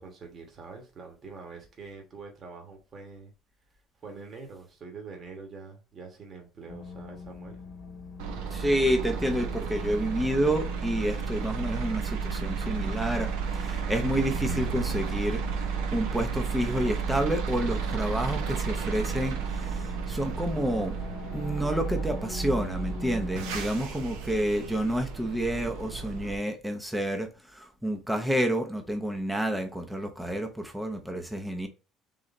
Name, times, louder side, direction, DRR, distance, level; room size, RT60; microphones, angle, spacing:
voice 1, 0.0-3.3 4.0-7.6, right 4 dB, 35° right, 1.3 m, -45 dB
sound 1, 6.7-23.6, left 5 dB, 60° left, 0.9 m, -43 dB
sound 2, 8.2-26.4, right 6 dB, 85° right, 0.9 m, -32 dB
voice 2, 8.5-15.4 15.9-21.0 21.3-31.7, equal, 5° right, 0.7 m, -29 dB
3.8 x 3.2 x 4.0 m
cardioid pair, 130°, 0 cm